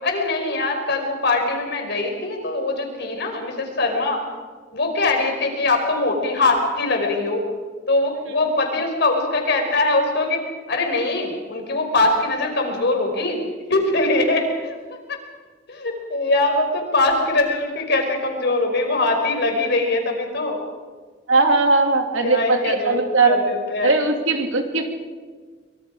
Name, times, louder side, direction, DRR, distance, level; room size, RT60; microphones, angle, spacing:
voice 1, 0.0-4.2 4.7-7.4 7.9-10.4 10.7-13.4 13.7-14.8 15.1-15.2 15.7-20.7 22.2-23.0 23.3-23.9, left 2 dB, 60° left, 3 dB, 4.7 m, -22 dB
voice 2, 21.3-23.4 23.8-24.8, right 3 dB, 85° right, 3 dB, 3.1 m, -19 dB
25.0 x 23.0 x 5.1 m, 1.5 s
head